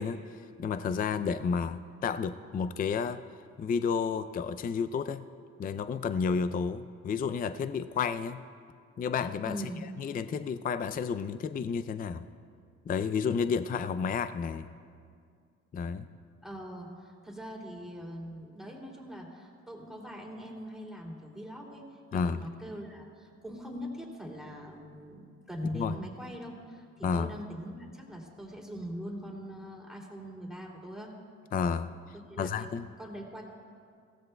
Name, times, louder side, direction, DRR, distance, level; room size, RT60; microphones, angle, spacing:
voice 1, 0.0-3.2 3.6-5.3 5.6-8.4 9.0-9.6 10.0-12.3 12.9-14.7 15.7-16.1 22.1-22.4 25.7-26.0 27.0-27.4 31.5-31.9 32.4-32.9, left 6 dB, 30° left, 12 dB, 0.4 m, -31 dB
voice 2, 9.4-9.8 16.4-31.1 32.3-32.7 33.0-33.4, equal, ahead, -1 dB, 2.7 m, -42 dB
22.0 x 16.0 x 2.2 m, 2.2 s
cardioid pair, 90°, 30 cm